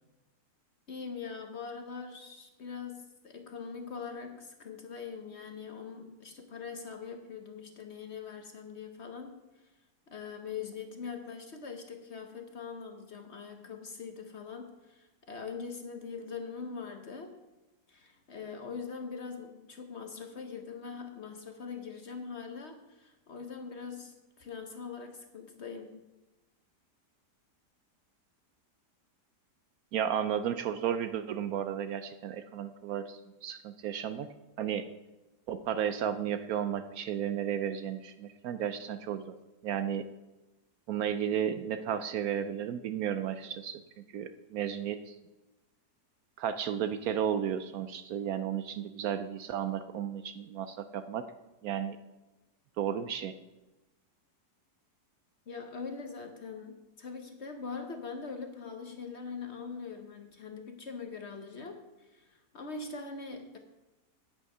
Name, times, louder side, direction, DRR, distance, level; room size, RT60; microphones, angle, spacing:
voice 1, 0.9-9.7 10.1-17.3 17.9-26.0 55.5-63.6, left 5 dB, 50° left, 5 dB, 0.9 m, -42 dB
voice 2, 29.9-34.3 34.6-34.9 35.5-39.3 39.6-40.1 40.9-43.8 44.1-45.2 46.4-51.3 51.6-52.0 52.8-53.3, right 9 dB, 70° right, 10 dB, 0.9 m, -33 dB
9.2 x 8.9 x 5.5 m, 1.1 s
omnidirectional pair, 1.8 m